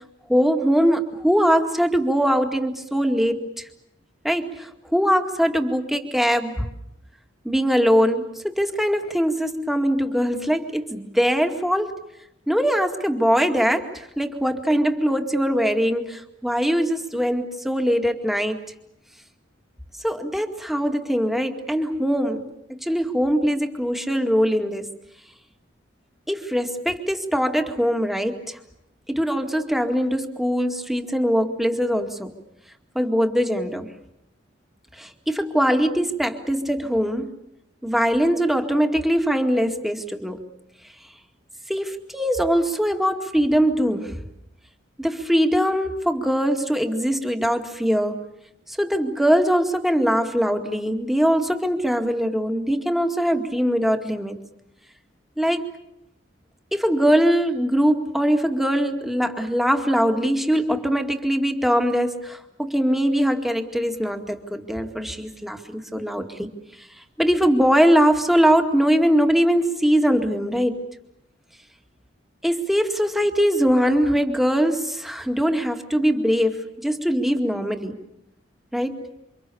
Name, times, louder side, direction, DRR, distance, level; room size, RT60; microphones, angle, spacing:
voice 1, 0.3-3.7 4.2-6.7 7.4-12.0 12.5-18.6 20.0-24.9 26.3-28.6 29.1-32.3 32.9-33.9 35.0-37.3 37.8-40.4 41.7-44.2 45.0-48.2 48.7-54.4 55.4-55.7 56.7-66.5 66.8-66.9 67.2-70.8 72.4-78.0 78.7-79.0, equal, ahead, 5 dB, 2.1 m, -22 dB
28.5 x 26.0 x 7.1 m, 0.82 s
head